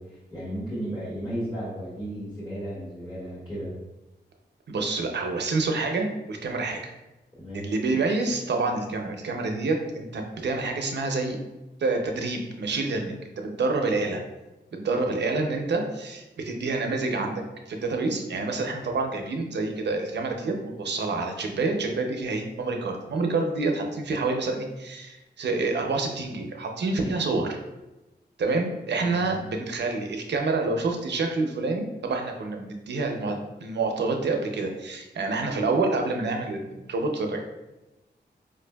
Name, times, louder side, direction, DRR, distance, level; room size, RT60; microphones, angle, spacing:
voice 1, 0.0-3.7 7.4-7.7 29.1-29.4, right 1 dB, 25° left, -11 dB, 1.2 m, -34 dB
voice 2, 4.7-6.9 7.5-11.4 11.8-14.2 14.7-27.6 28.4-37.5, right 3 dB, 70° right, 3 dB, 0.5 m, -28 dB
4.7 x 2.6 x 2.2 m, 1.0 s
wide cardioid pair, 130°, 18 cm